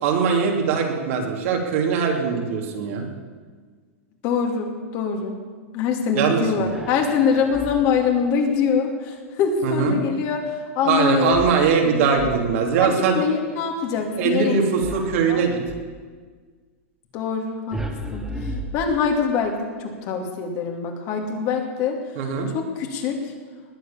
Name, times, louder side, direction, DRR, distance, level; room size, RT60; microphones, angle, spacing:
voice 1, 0.0-3.0 6.1-6.7 9.6-10.0 10.8-13.2 14.2-15.6 22.2-22.5, right 6 dB, 65° right, 1 dB, 3.0 m, -21 dB
voice 2, 4.2-5.4 5.7-11.4 11.8-12.0 12.8-14.6 15.3-15.4 17.1-17.8 18.1-22.0 22.5-23.2, left 6 dB, 45° left, 2 dB, 2.6 m, -24 dB
sound 1, 6.6-8.1 11.3-12.8 14.8-16.0 17.7-19.4, equal, 5° right, 1.9 m, -35 dB
20.0 x 8.1 x 7.1 m, 1.5 s
hypercardioid pair, 125°, 7 cm